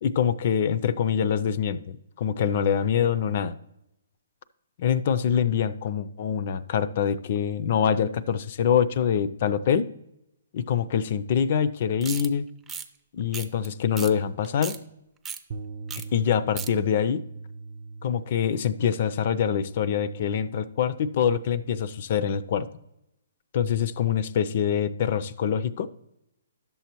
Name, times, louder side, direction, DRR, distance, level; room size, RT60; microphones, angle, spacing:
voice 1, 0.0-3.6 4.8-9.9 10.5-12.4 13.1-14.8 16.1-17.2 18.0-22.7 23.5-25.9, left 8 dB, 50° left, 15 dB, 0.4 m, -25 dB
sound 1, 12.0-12.3 12.7-12.9 13.3-13.7 14.0-14.1 14.4-14.8 15.2-15.4 15.9-16.0 16.3-16.7, right 6 dB, 10° right, 0.5 m, -35 dB
Bass guitar, 15.5-21.8, right 4 dB, 50° right, 0.6 m, -42 dB
11.0 x 6.9 x 3.0 m, 0.85 s
hypercardioid pair, 145°, 0 cm